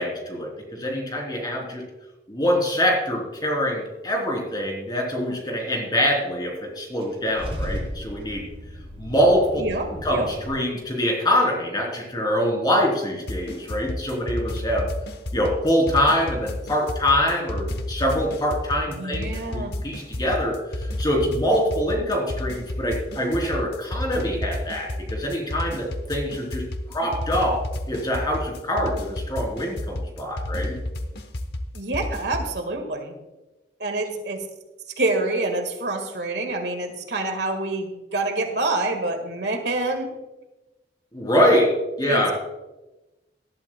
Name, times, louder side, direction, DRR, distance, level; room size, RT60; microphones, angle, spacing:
voice 1, 0.0-1.8 2.3-8.4 9.0-9.6 9.9-14.9 15.3-30.8 41.1-41.7 42.0-42.3, equal, 25° left, -1 dB, 3.4 m, -24 dB
Car / Engine starting / Idling, 7.0-10.5, equal, 35° right, 3.0 m, -35 dB
voice 2, 9.6-10.3 18.9-19.7 31.7-33.1 33.8-34.4 35.0-40.1 42.1-42.3, right 2 dB, 70° right, 5 dB, 1.7 m, -27 dB
sound 1, 13.3-32.5, left 1 dB, 65° left, 1.0 m, -31 dB
18.5 x 11.5 x 2.3 m, 1.1 s
head